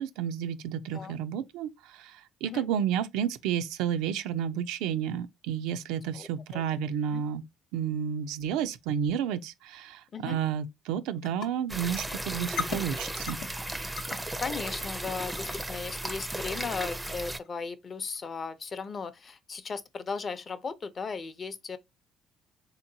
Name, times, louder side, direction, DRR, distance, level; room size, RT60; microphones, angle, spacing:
voice 1, 0.0-7.4 7.7-13.4, right 9 dB, 85° right, 0.3 m, -31 dB
voice 2, 6.1-6.8 7.1-7.2 10.1-10.4 14.4-21.8, left 5 dB, 40° left, 0.5 m, -37 dB
sound 1, 11.2-11.5 11.7-12.2 12.4-12.8 13.3-13.5 14.0-14.2 14.7-14.9 15.4-15.6 16.0-16.3 16.7-17.0 17.4-17.6 18.1-18.2, left 5 dB, 75° left, 0.7 m, -35 dB
sound 2, 11.7-17.4, right 1 dB, 10° right, 0.4 m, -35 dB
3.6 x 2.8 x 2.6 m
cardioid pair, 90°, 0 cm